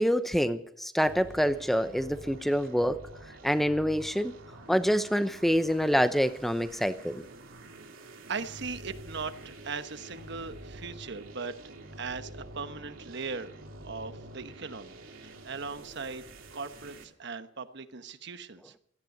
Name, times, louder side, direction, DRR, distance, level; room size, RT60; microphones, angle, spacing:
voice 1, 0.0-3.0 3.4-4.3 4.7-7.2, equal, ahead, 11 dB, 0.8 m, -26 dB
sound 1, 1.0-17.0, right 1 dB, 80° right, 2.8 m, -48 dB
voice 2, 8.3-11.5 12.0-13.6 13.8-16.3 16.5-18.8, right 4 dB, 60° right, 10 dB, 1.2 m, -39 dB
17.5 x 14.0 x 5.3 m, 0.70 s
head